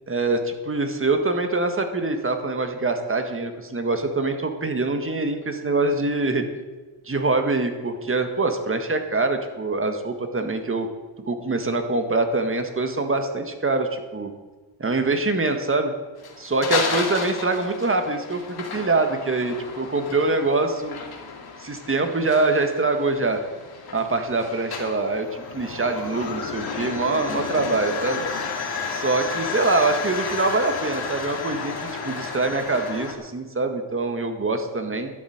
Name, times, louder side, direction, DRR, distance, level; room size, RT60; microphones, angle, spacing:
voice 1, 0.1-6.4 7.1-10.9 11.3-14.3 14.8-15.9 16.4-21.0 21.6-23.4 23.9-28.2 28.9-31.8 32.0-35.1, right 3 dB, 25° right, 6 dB, 1.6 m, -24 dB
sound 1, 16.2-33.1, left 5 dB, 45° left, 2.2 m, -32 dB
11.5 x 7.3 x 8.9 m, 1.3 s
cardioid pair, 100°, 50 cm